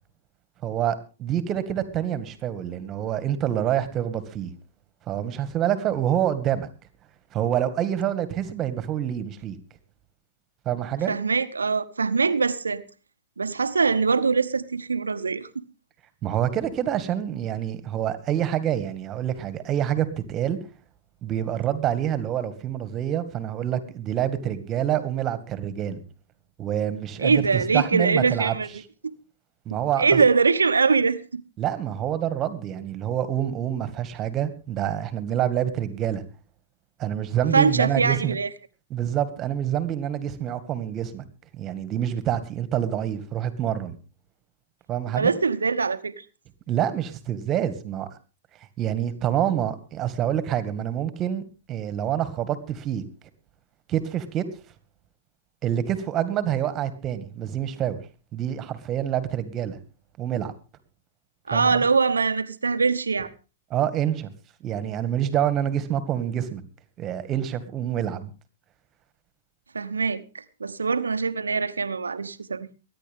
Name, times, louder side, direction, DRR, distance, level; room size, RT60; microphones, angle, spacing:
voice 1, 0.6-4.5 5.1-6.7 7.3-9.6 10.7-11.1 16.2-20.6 21.2-26.0 26.6-28.6 29.7-30.2 31.6-36.2 37.0-38.4 38.9-41.2 41.5-44.0 44.9-45.3 46.7-48.1 48.8-51.4 51.7-53.0 53.9-54.5 55.6-58.0 58.3-59.8 60.2-60.5 61.5-61.8 63.7-64.3 64.6-66.6 67.0-68.3, right 10 dB, 30° right, 1.9 m, -27 dB
voice 2, 11.1-12.8 13.4-15.5 27.2-28.7 29.7-31.4 37.5-38.5 45.1-46.2 61.5-63.3 69.7-72.7, right 4 dB, 85° right, 1.0 m, -23 dB
24.0 x 10.5 x 3.6 m
hypercardioid pair, 110°, 0 cm